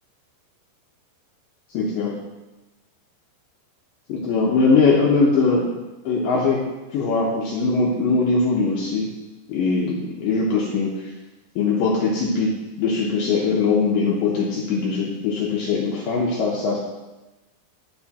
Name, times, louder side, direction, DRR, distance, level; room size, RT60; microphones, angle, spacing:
voice 1, 1.7-2.1 4.1-5.6 6.1-6.6 6.9-9.1 9.5-10.9 11.6-12.5 12.8-16.8, left 4 dB, 80° left, -4 dB, 1.9 m, -21 dB
11.0 x 4.9 x 2.9 m, 1.1 s
omnidirectional pair, 5.1 m